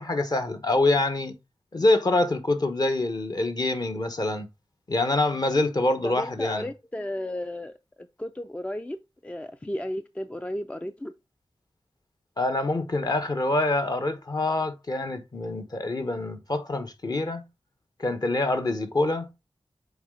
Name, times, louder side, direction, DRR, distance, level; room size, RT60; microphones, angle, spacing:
voice 1, 0.0-1.3 1.7-4.5 4.9-6.7 12.4-17.4 18.0-19.3, left 2 dB, 40° left, 1.1 m, -25 dB
voice 2, 6.0-9.0 9.2-11.1, left 1 dB, 15° left, 0.4 m, -34 dB
7.1 x 4.1 x 3.7 m
wide cardioid pair, 110°, 10 cm